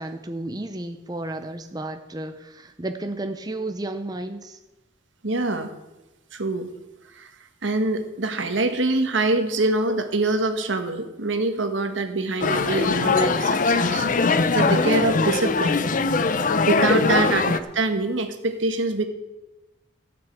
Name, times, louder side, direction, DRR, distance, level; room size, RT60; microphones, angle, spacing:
voice 1, 0.0-4.6 16.7-17.1, right 2 dB, 20° right, 7 dB, 0.7 m, -32 dB
voice 2, 5.2-5.7 6.3-6.7 7.1-7.3 7.6-14.1 14.5-15.8 16.7-19.0, right 2 dB, 80° right, 7 dB, 1.4 m, -24 dB
sound 1, 12.4-17.6, left 4 dB, 45° left, 0.6 m, -21 dB
14.5 x 6.1 x 7.9 m, 1.0 s
head